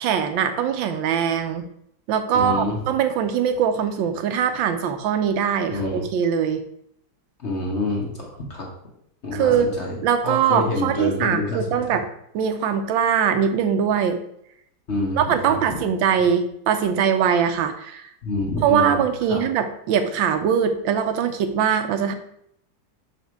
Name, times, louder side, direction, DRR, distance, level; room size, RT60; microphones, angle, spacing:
voice 1, 0.0-1.6 2.1-6.6 9.3-9.7 10.0-12.1 12.3-14.2 15.2-18.0 18.6-22.1, right 8 dB, 80° right, 8 dB, 1.4 m, -22 dB
voice 2, 2.3-2.8 5.7-6.0 7.4-8.7 9.2-11.8 14.9-15.6 18.2-19.0 19.3-19.4, left 2 dB, 40° left, -2 dB, 1.3 m, -27 dB
5.8 x 4.2 x 4.6 m, 0.72 s
omnidirectional pair, 2.1 m